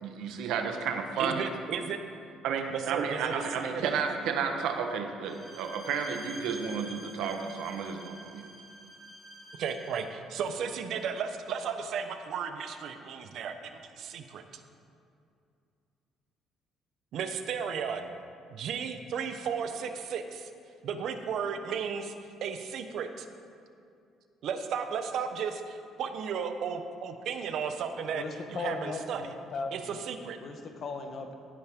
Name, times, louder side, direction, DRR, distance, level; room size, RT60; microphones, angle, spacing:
voice 1, 0.0-1.4 2.4-8.5, right 6 dB, 80° right, 5 dB, 1.2 m, -32 dB
voice 2, 1.2-2.0 2.7-3.4 3.7-4.1 9.6-14.4 17.1-18.1 18.5-20.5 20.8-22.1 22.4-23.3 24.4-28.2 28.5-29.2 29.7-30.4, right 6 dB, 60° right, 7 dB, 0.9 m, -34 dB
Bowed string instrument, 5.2-10.1, right 1 dB, 5° right, 3.4 m, -47 dB
voice 3, 28.1-29.9 30.4-31.3, left 4 dB, 45° left, 5 dB, 1.2 m, -37 dB
16.5 x 10.5 x 3.7 m, 2.5 s
cardioid pair, 145°, 0 cm